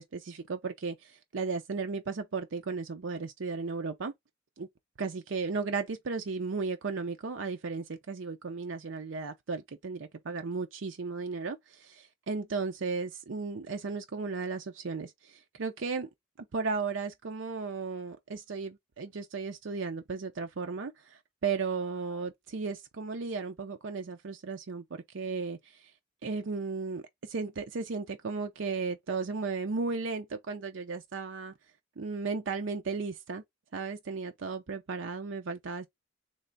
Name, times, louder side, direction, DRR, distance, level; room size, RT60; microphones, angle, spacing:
voice 1, 0.0-4.1 4.6-4.7 5.0-16.1 16.4-25.9 26.2-31.5 32.0-33.4 33.7-35.9, right 4 dB, 70° right, 0.6 m, -35 dB
3.3 x 3.3 x 3.9 m
head